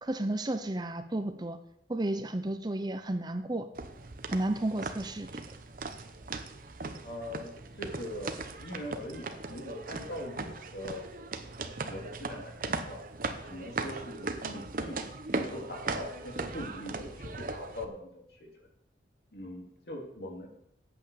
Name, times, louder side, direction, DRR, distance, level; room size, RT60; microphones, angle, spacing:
voice 1, 0.0-1.6 1.9-3.7 4.3-5.4, right 1 dB, 25° right, 8 dB, 0.6 m, -32 dB
sound 1, 3.7-17.8, right 3 dB, 50° right, 0.9 m, -38 dB
voice 2, 7.0-11.1 11.6-13.1 13.4-18.5 19.3-20.5, left 1 dB, 60° left, 1 dB, 2.8 m, -42 dB
8.8 x 8.6 x 7.0 m, 0.77 s
head